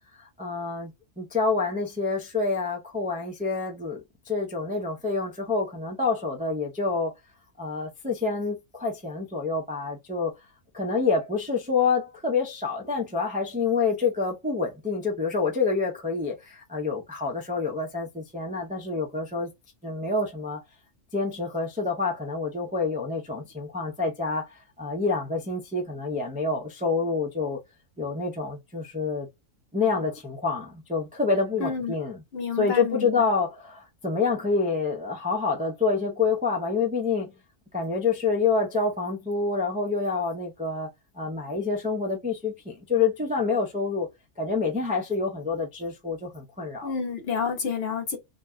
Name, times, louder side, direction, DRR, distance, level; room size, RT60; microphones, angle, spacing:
voice 1, 0.2-0.9 1.2-7.1 7.6-10.3 10.7-19.5 19.8-20.6 21.1-27.6 28.0-29.3 29.7-32.2 32.6-37.3 37.7-40.9 41.1-44.1 44.4-46.9, left 4 dB, 10° right, 0.3 m, -27 dB
voice 2, 31.6-32.0 32.3-33.3 46.8-48.2, left 6 dB, 55° left, 0.9 m, -29 dB
2.7 x 2.2 x 3.4 m
omnidirectional pair, 1.3 m